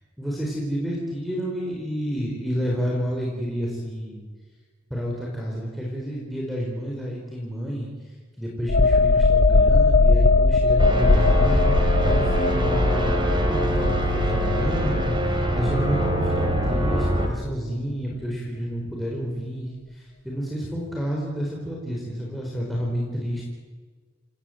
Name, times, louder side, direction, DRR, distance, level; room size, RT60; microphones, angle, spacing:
voice 1, 0.2-4.2 4.9-7.9 8.4-23.4, equal, ahead, -4 dB, 4.3 m, -30 dB
sound 1, 8.7-16.1 16.5-16.7, left 3 dB, 55° left, 0.7 m, -20 dB
sound 2, 10.8-17.3, right 1 dB, 25° right, 2.9 m, -24 dB
28.0 x 18.5 x 7.9 m, 1.4 s
head